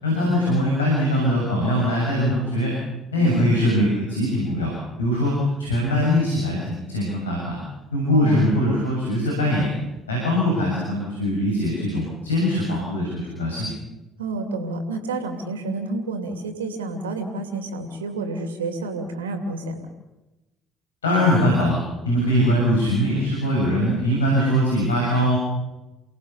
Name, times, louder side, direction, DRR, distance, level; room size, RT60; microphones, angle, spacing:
voice 1, 0.0-2.8 3.1-7.6 7.9-9.7 10.1-13.7 21.0-21.8 22.0-25.4, equal, 85° left, -3 dB, 6.9 m, -21 dB
voice 2, 3.2-3.5 8.1-8.4 14.2-19.9, right 3 dB, 85° right, 6 dB, 2.8 m, -29 dB
29.5 x 18.0 x 7.1 m, 1.0 s
hypercardioid pair, 55°, 0 cm